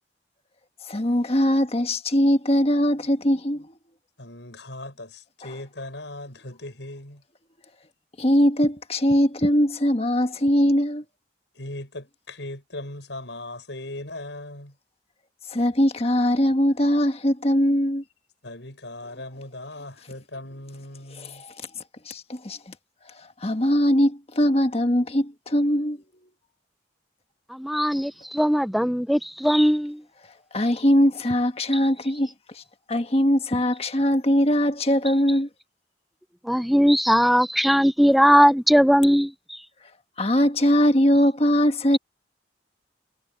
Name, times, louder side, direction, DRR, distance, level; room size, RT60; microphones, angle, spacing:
voice 1, 0.9-3.7 8.2-11.0 15.5-18.0 22.1-22.7 23.4-26.0 30.5-32.3 32.9-35.5 40.2-42.0, equal, 35° left, 1.5 m, -21 dB
voice 2, 4.2-7.2 11.5-14.7 18.4-21.4, left 1 dB, 80° left, 6.4 m, -38 dB
voice 3, 27.6-30.0 36.5-39.3, equal, ahead, 0.4 m, -19 dB
head